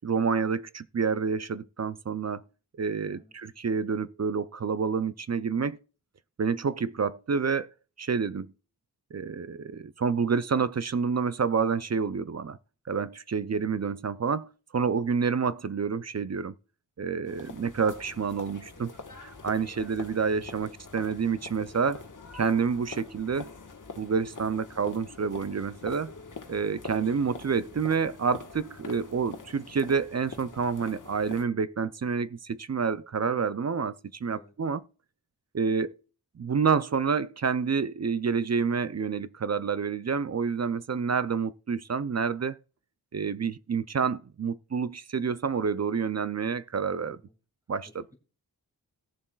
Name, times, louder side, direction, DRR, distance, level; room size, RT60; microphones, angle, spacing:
voice 1, 0.0-2.4 2.8-5.8 6.4-7.7 8.0-8.5 9.1-12.6 12.9-16.5 17.0-22.0 22.3-23.5 24.0-26.1 26.5-34.8 35.5-35.9 36.4-42.6 43.1-47.2 47.7-48.0, right 5 dB, 40° right, 0.5 m, -28 dB
sound 1, 17.2-31.4, left 4 dB, 50° left, 1.5 m, -44 dB
voice 2, 47.8-48.2, equal, 10° right, 2.6 m, -55 dB
18.0 x 7.0 x 2.3 m
wide cardioid pair, 65°, 40 cm